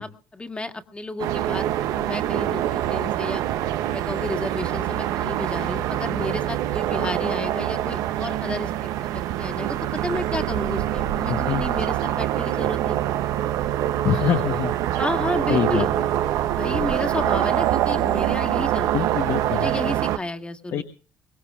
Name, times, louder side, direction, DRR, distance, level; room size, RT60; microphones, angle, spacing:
voice 1, 0.0-3.4 3.9-13.0 15.0-15.9 16.5-19.1 19.5-20.8, left 2 dB, 20° left, 6 dB, 1.7 m, -32 dB
sound 1, 1.2-20.2, right 12 dB, 80° right, 0.8 m, -25 dB
voice 2, 11.3-11.6 14.0-14.7 15.5-15.9 18.9-19.7 20.7-20.8, left 10 dB, 65° left, 8 dB, 1.1 m, -24 dB
23.0 x 19.0 x 2.4 m, 0.37 s
cardioid pair, 90°, 6 cm